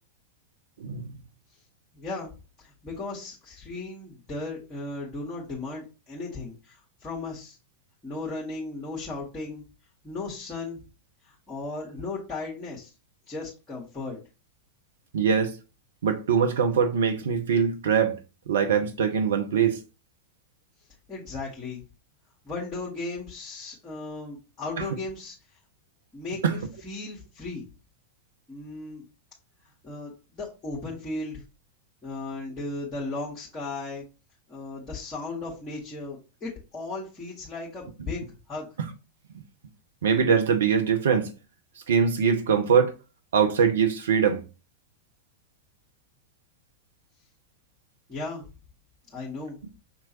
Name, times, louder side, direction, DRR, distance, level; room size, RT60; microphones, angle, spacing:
voice 1, 0.8-1.1 15.1-15.6 16.0-18.2 18.5-19.8 24.8-24.9 26.4-26.6 38.8-38.9 40.0-41.3 41.9-42.9 43.3-44.4, right 6 dB, 60° right, 0.5 m, -22 dB
voice 2, 1.9-2.3 2.6-7.6 8.0-9.6 10.0-10.8 11.2-12.9 13.3-14.2 21.1-21.8 22.4-25.3 26.1-27.7 28.5-29.0 29.8-31.4 32.0-34.0 34.5-38.2 38.5-38.7 48.1-48.4 49.1-49.6, left 3 dB, 15° left, 1.4 m, -36 dB
5.8 x 3.0 x 2.9 m
figure-of-eight pair, 90°, 0 cm